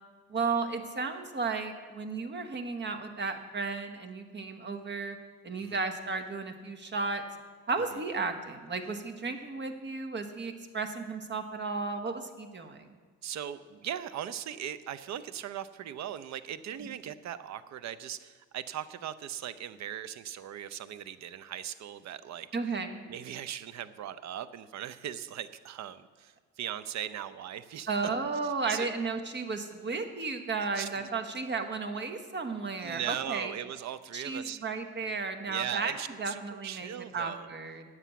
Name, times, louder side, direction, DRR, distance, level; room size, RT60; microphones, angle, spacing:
voice 1, 0.3-5.2 5.4-7.2 7.7-12.9 16.8-16.9 22.5-23.0 27.9-33.5 34.1-35.9 36.2-37.8, right 4 dB, 35° right, 7 dB, 1.3 m, -34 dB
voice 2, 13.2-22.5 23.1-27.9 28.7-28.9 30.7-31.1 32.8-34.6 35.5-37.5, right 10 dB, 65° right, 14 dB, 0.7 m, -39 dB
9.7 x 7.6 x 8.1 m, 1.5 s
cardioid pair, 90°, 30 cm